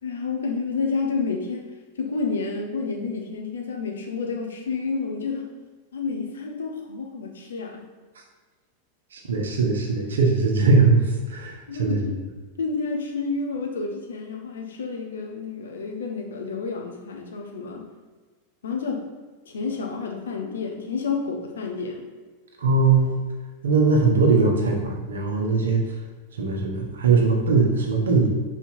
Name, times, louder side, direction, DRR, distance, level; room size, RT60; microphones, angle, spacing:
voice 1, 0.0-1.7 1.9-5.4 5.9-7.8 11.7-12.2 12.6-17.9 18.6-19.0 19.4-22.0, left 4 dB, 65° left, 2 dB, 1.1 m, -29 dB
voice 2, 9.1-12.1 22.6-23.2 23.6-25.8 26.3-28.3, right 4 dB, 65° right, 1 dB, 1.2 m, -20 dB
5.7 x 4.8 x 4.5 m, 1.4 s
figure-of-eight pair, 90°, 0 cm